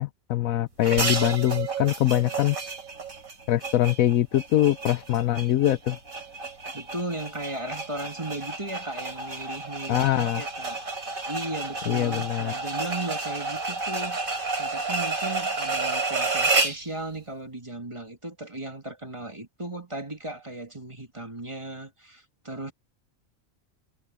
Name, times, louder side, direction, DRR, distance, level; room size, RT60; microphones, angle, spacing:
voice 1, 0.0-2.6 3.5-6.0 9.9-10.4 11.9-12.5, left 13 dB, 85° left, 1.1 m, -23 dB
sound 1, 0.8-16.9, right 3 dB, 90° right, 3.8 m, -31 dB
voice 2, 6.7-10.8 11.3-22.7, right 2 dB, 20° right, 1.9 m, -36 dB
omnidirectional pair, 1.4 m